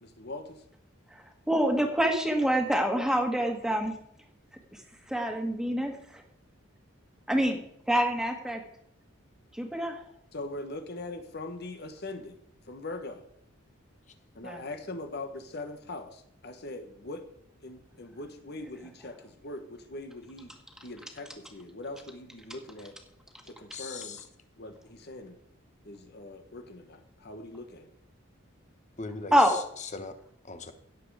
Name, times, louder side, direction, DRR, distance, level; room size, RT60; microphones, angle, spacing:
voice 1, 0.0-0.6 10.3-12.4 12.7-13.3 14.3-17.2 17.6-20.5 20.8-22.9 23.4-24.2 24.6-25.4 25.8-27.9, left 2 dB, 50° left, 7 dB, 1.4 m, -41 dB
voice 2, 1.5-4.0 5.1-6.0 7.3-7.6 7.9-8.6 9.5-10.0 14.4-14.6 29.3-29.6, equal, 5° right, 4 dB, 1.8 m, -26 dB
voice 3, 23.7-24.2 29.0-30.1 30.4-30.7, left 4 dB, 35° left, 9 dB, 1.2 m, -39 dB
16.5 x 7.6 x 4.9 m, 0.73 s
head